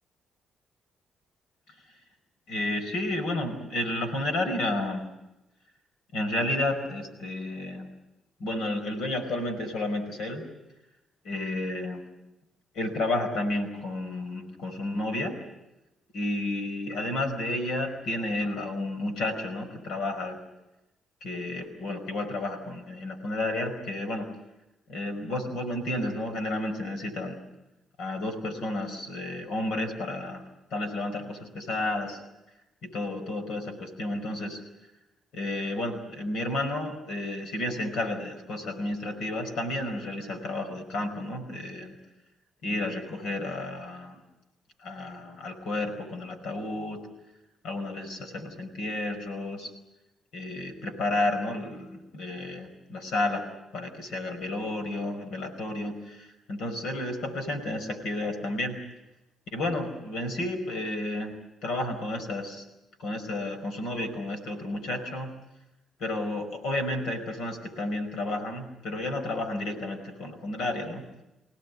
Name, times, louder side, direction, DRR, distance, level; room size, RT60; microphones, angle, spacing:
voice 1, 2.5-5.0 6.1-7.9 8.4-10.5 11.2-12.0 12.7-15.3 16.1-20.4 21.2-24.3 24.9-27.4 28.0-30.4 30.7-32.2 32.8-34.6 35.3-41.9 42.6-44.2 44.8-47.0 47.6-49.7 50.3-53.4 53.7-58.8 59.5-61.3 61.6-62.6 63.0-65.3 66.0-71.0, left 1 dB, 80° left, 7 dB, 5.1 m, -31 dB
26.0 x 17.5 x 9.5 m, 0.95 s
cardioid pair, 90°, 0 cm